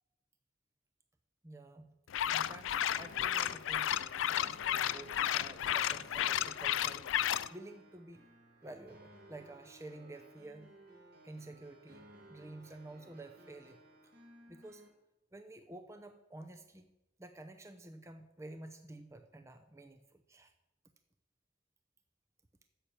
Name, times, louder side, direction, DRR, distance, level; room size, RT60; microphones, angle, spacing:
voice 1, 1.4-1.9 2.2-4.0 4.3-7.1 7.5-8.2 8.6-10.7 11.2-14.1 14.5-14.9 15.3-16.9 17.2-20.5, right 2 dB, 15° right, 7 dB, 0.6 m, -51 dB
sound 1, 2.1-7.5, left 10 dB, 70° left, 0.4 m, -33 dB
sound 2, 2.9-14.9, right 1 dB, 50° right, 2.6 m, -58 dB
11.5 x 7.4 x 7.1 m, 0.91 s
head